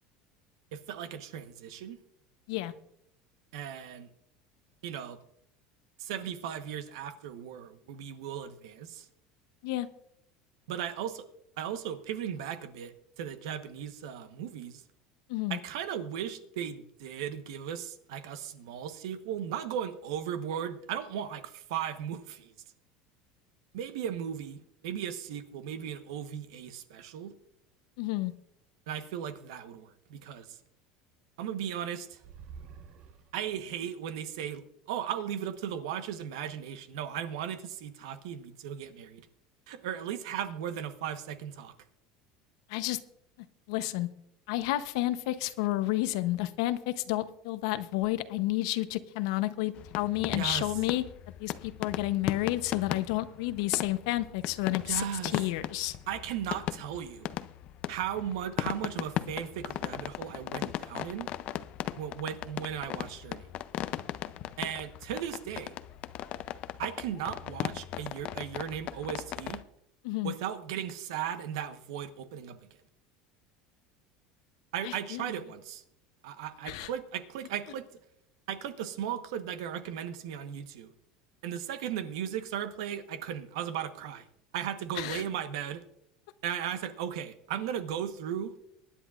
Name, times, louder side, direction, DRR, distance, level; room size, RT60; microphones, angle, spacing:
voice 1, 0.7-2.0 3.5-4.1 4.8-5.2 6.0-9.1 10.7-11.3 11.6-14.8 15.5-22.5 23.7-27.3 28.9-30.6 31.4-32.2 33.3-39.3 39.7-41.7 50.3-50.7 54.8-55.4 56.1-57.3 57.9-61.3 62.0-63.5 64.6-65.7 66.8-69.6 70.2-72.7 74.7-75.8 76.2-77.9 78.5-80.9 81.4-84.3 84.5-85.8 86.4-88.5, right 9 dB, 85° right, 10 dB, 1.1 m, -36 dB
voice 2, 28.0-28.3 42.7-43.0 43.7-44.1 44.5-51.0 51.4-55.0 55.3-55.9 70.0-70.3 74.8-75.2 76.7-76.9 85.0-85.2, left 16 dB, 80° left, 12 dB, 0.8 m, -30 dB
sound 1, 32.1-33.8, right 6 dB, 50° right, 1.2 m, -49 dB
sound 2, 49.7-69.6, left 12 dB, 50° left, 0.5 m, -38 dB
24.0 x 10.0 x 2.5 m, 0.76 s
supercardioid pair, 135°, 3 cm